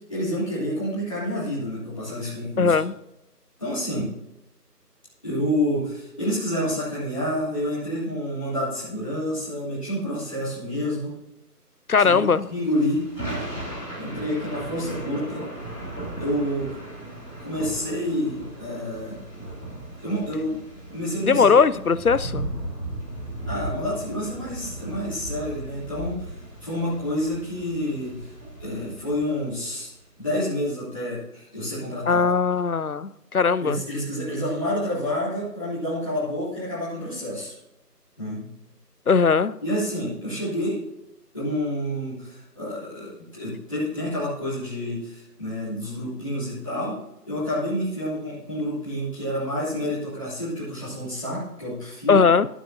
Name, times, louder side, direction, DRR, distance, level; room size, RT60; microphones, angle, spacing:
voice 1, 0.1-2.7 3.6-4.1 5.2-11.1 12.0-12.2 12.5-13.0 14.0-15.4 16.2-16.8 17.4-19.1 20.0-20.6 20.9-21.6 23.4-26.3 26.6-28.2 28.6-29.9 30.2-32.2 33.6-37.5 38.2-38.4 39.6-40.8 41.3-47.0 47.2-52.2, equal, 20° left, 3.1 m, -28 dB
voice 2, 2.6-2.9 11.9-12.4 21.2-22.5 32.1-33.8 39.1-39.5 52.1-52.5, left 5 dB, 65° left, 0.6 m, -19 dB
Thunder / Rain, 12.3-29.8, right 1 dB, ahead, 3.7 m, -36 dB
13.0 x 11.0 x 2.8 m
figure-of-eight pair, 175°, 48 cm